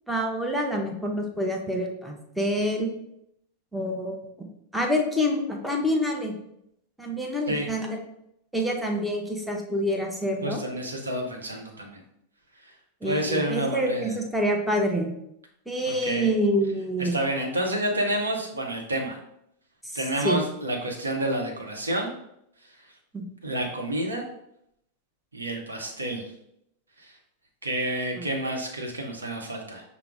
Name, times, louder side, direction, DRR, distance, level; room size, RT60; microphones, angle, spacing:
voice 1, 0.1-2.9 3.7-4.3 4.7-6.3 7.0-8.0 8.5-10.6 13.0-15.1 15.7-17.1 19.9-20.4 23.1-23.3 28.2-28.3, equal, 5° right, 1 dB, 0.6 m, -27 dB
voice 2, 10.4-12.0 13.0-14.1 15.9-16.3 17.0-19.2 19.9-22.1 23.4-24.2 25.3-26.2 27.6-29.8, right 1 dB, 75° right, 2 dB, 0.7 m, -29 dB
5.7 x 2.0 x 3.5 m, 0.77 s
figure-of-eight pair, 90°, 0 cm